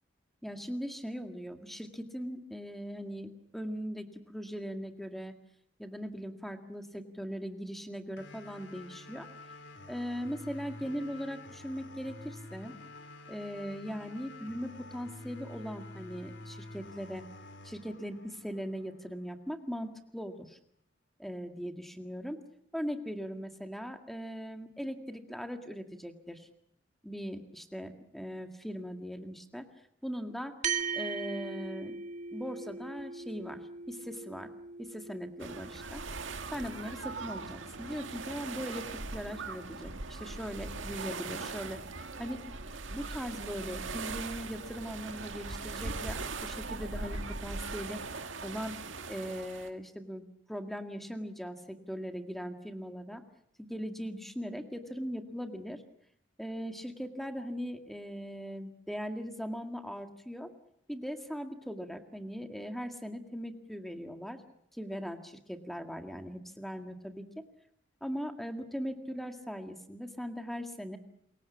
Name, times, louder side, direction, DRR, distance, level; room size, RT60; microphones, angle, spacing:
voice 1, 0.4-5.4 5.8-9.3 9.9-12.8 13.3-17.2 17.6-20.6 21.2-22.4 22.7-26.5 27.0-29.7 30.0-30.6 30.9-32.0 32.3-34.5 34.8-36.0 36.5-42.4 42.9-48.0 48.4-48.8 49.1-53.2 53.6-55.8 56.4-60.5 60.9-64.4 64.7-67.4 68.0-71.0, equal, ahead, 5 dB, 1.9 m, -40 dB
sound 1, 8.2-19.1, left 2 dB, 70° left, 3.5 m, -49 dB
sound 2, 30.6-39.3, right 6 dB, 40° right, 2.1 m, -41 dB
sound 3, 35.4-49.7, right 3 dB, 90° right, 2.0 m, -40 dB
27.5 x 22.5 x 7.2 m, 0.69 s
head